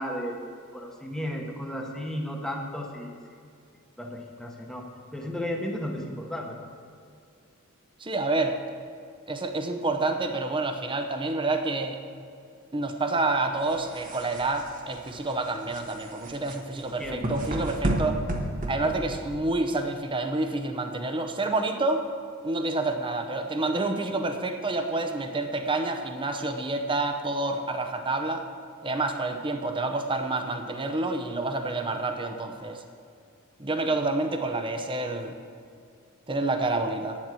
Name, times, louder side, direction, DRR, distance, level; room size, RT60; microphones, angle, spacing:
voice 1, 0.0-3.1 4.0-6.6 17.0-17.3, equal, 5° left, 1 dB, 1.1 m, -34 dB
voice 2, 8.0-8.6 9.3-12.0 12.7-18.2 18.7-22.1 22.4-28.5 28.8-32.8 33.6-35.4 36.3-37.2, right 2 dB, 20° right, 6 dB, 0.7 m, -28 dB
sound 1, 13.6-19.5, right 1 dB, 35° right, 1.1 m, -32 dB
9.7 x 7.4 x 7.6 m, 2.3 s
head